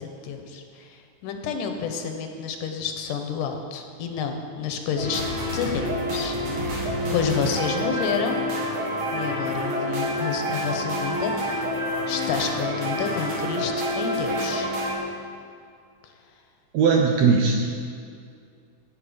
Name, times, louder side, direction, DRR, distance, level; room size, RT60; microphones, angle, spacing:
voice 1, 0.0-5.2 5.5-8.4 9.1-11.7 12.1-14.7 16.0-16.1, left 6 dB, 80° left, 5 dB, 2.3 m, -30 dB
sound 1, 5.0-15.0, equal, 50° right, 2.9 m, -28 dB
voice 2, 16.7-17.7, right 5 dB, 75° right, 1 dB, 1.7 m, -19 dB
16.5 x 5.6 x 4.9 m, 2.3 s
omnidirectional pair, 3.8 m